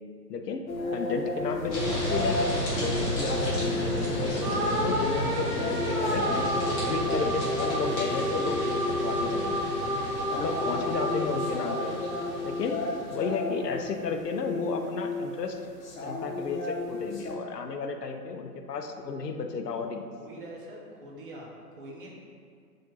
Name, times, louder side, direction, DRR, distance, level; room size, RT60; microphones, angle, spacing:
voice 1, 0.3-0.6 0.9-9.5 10.3-11.9 12.4-12.8 13.1-15.6 16.0-20.1, left 4 dB, 80° left, 5 dB, 0.6 m, -33 dB
sound 1, 0.7-17.3, left 2 dB, 60° left, 0.9 m, -34 dB
sound 2, 1.7-13.2, equal, 20° left, 0.7 m, -33 dB
sound 3, 4.4-13.0, equal, 50° right, 1.3 m, -31 dB
voice 2, 20.2-22.1, right 1 dB, 35° right, -3 dB, 0.7 m, -44 dB
5.9 x 2.5 x 2.9 m, 2.1 s
figure-of-eight pair, 125°, 48 cm